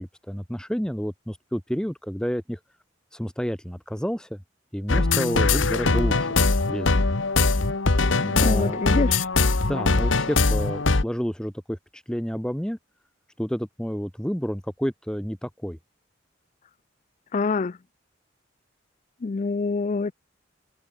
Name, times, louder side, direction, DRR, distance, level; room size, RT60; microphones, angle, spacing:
voice 1, 0.0-2.6 3.1-4.4 4.7-6.4 6.7-7.1 8.2-9.0 9.6-12.8 13.4-15.8, equal, 5° left, 1.4 m, -30 dB
sound 1, 4.9-11.0, left 3 dB, 90° left, 1.3 m, -21 dB
voice 2, 8.4-9.2 17.3-17.7 19.2-20.1, left 4 dB, 40° left, 0.4 m, -25 dB
open air
head